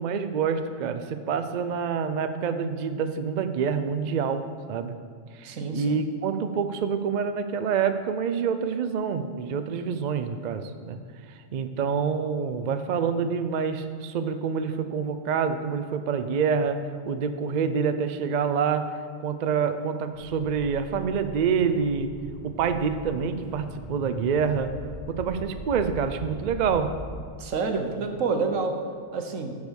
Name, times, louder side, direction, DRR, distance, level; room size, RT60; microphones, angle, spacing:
voice 1, 0.0-5.0 5.4-11.0 11.5-18.9 19.2-22.1 22.4-24.8 25.1-27.0, right 6 dB, 55° right, 9 dB, 0.5 m, -27 dB
voice 2, 5.4-6.0 27.4-28.7 29.1-29.5, right 4 dB, 80° right, 5 dB, 1.3 m, -28 dB
sound 1, 20.1-27.1, equal, 35° left, 2.6 m, -40 dB
8.4 x 6.6 x 6.3 m, 2.1 s
omnidirectional pair, 1.3 m